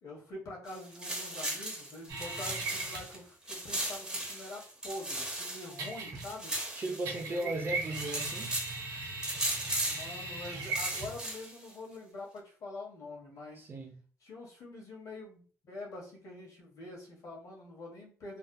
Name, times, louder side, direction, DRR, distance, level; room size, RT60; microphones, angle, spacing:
voice 1, 0.0-6.5 7.2-7.5 9.8-13.7 14.2-18.4, left 2 dB, 65° left, 1.4 m, -45 dB
sound 1, 0.7-3.2 3.5-7.4 7.7-8.8 9.2-10.1 10.5-11.7, right 1 dB, 15° right, 0.9 m, -37 dB
sound 2, 2.1-3.2 5.8-6.5 7.1-11.2, right 3 dB, 85° right, 1.2 m, -39 dB
voice 2, 6.8-8.5 13.6-13.9, right 1 dB, 35° right, 0.6 m, -36 dB
3.4 x 2.7 x 2.2 m
cardioid pair, 105°, 6 cm